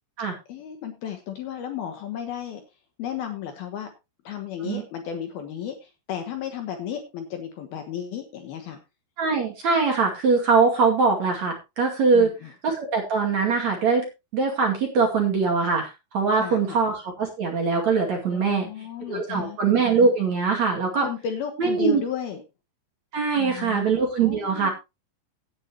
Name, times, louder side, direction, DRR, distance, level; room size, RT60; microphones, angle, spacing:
voice 1, 0.5-2.6 3.0-3.9 4.2-8.8 12.1-12.5 16.3-16.8 18.2-19.6 21.0-22.4 23.4-23.9 24.2-24.7, left 9 dB, 70° left, 5 dB, 2.6 m, -34 dB
voice 2, 9.2-12.3 12.6-14.1 14.3-18.7 19.1-21.1 21.6-22.0 23.1-24.7, right 4 dB, 45° right, 1 dB, 2.9 m, -22 dB
17.0 x 8.1 x 2.9 m, 0.25 s
omnidirectional pair, 5.4 m